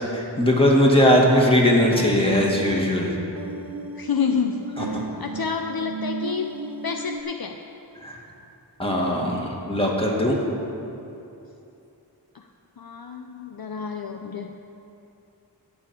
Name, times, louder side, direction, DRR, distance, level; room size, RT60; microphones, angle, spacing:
voice 1, 0.1-3.2 4.8-5.0 8.0-8.2 8.8-10.4, equal, 15° left, -3 dB, 2.1 m, -20 dB
sound 1, 1.4-7.2, right 3 dB, 55° right, 0.8 m, -35 dB
voice 2, 4.0-6.5 6.8-7.6 12.3-12.4 12.8-14.5, left 6 dB, 60° left, 4 dB, 0.6 m, -29 dB
17.0 x 7.0 x 4.5 m, 2.8 s
wide cardioid pair, 40°, 42 cm